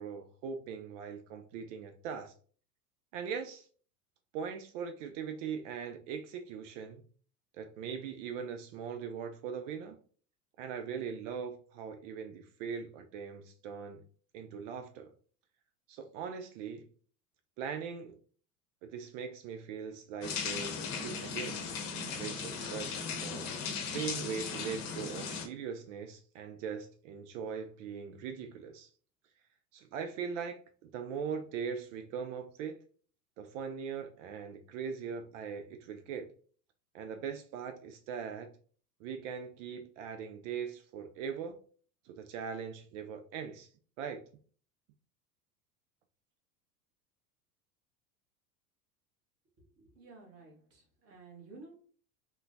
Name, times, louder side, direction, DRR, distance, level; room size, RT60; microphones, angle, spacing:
voice 1, 0.0-2.3 3.1-3.7 4.3-7.0 7.5-10.0 10.6-14.0 14.3-15.1 15.9-16.9 17.6-18.2 18.8-21.6 22.1-23.5 23.8-28.9 29.7-32.8 33.4-36.3 36.9-38.5 39.0-41.6 42.0-43.7 44.0-44.2, right 6 dB, 55° right, 0.5 m, -40 dB
sound 1, 20.2-25.5, left 5 dB, 45° left, 0.8 m, -37 dB
voice 2, 49.8-51.7, right 3 dB, 30° right, 1.3 m, -53 dB
3.6 x 2.2 x 2.6 m
hypercardioid pair, 85°, 47 cm